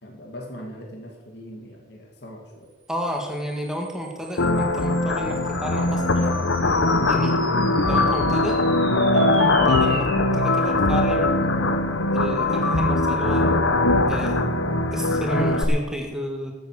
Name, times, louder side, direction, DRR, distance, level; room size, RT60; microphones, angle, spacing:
voice 1, 0.0-2.7 6.0-6.4 11.5-11.7, equal, 55° left, 0 dB, 2.3 m, -40 dB
voice 2, 2.9-6.3 7.1-7.4 7.8-8.6 9.1-11.5 12.1-13.5 14.1-14.4 14.9-16.5, equal, 5° right, 1 dB, 1.8 m, -31 dB
sound 1, 3.1-13.7, right 5 dB, 85° right, 2.6 m, -41 dB
sound 2, 4.4-15.6, left 2 dB, 85° left, 1.1 m, -21 dB
14.0 x 8.1 x 6.6 m, 1.1 s
head